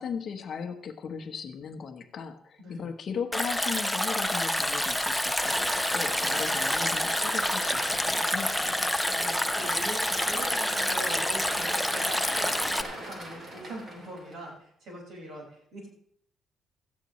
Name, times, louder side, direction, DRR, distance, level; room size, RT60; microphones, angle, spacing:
voice 1, 0.0-8.9, left 6 dB, 40° left, 6 dB, 1.0 m, -37 dB
Stream, 3.3-12.8, left 1 dB, ahead, 0.6 m, -28 dB
sound 1, 5.4-14.5, right 1 dB, 30° right, 3.0 m, -39 dB
voice 2, 9.0-15.9, right 1 dB, 50° right, -1 dB, 5.1 m, -42 dB
16.5 x 13.5 x 3.1 m, 0.69 s
cardioid pair, 165°, 0 cm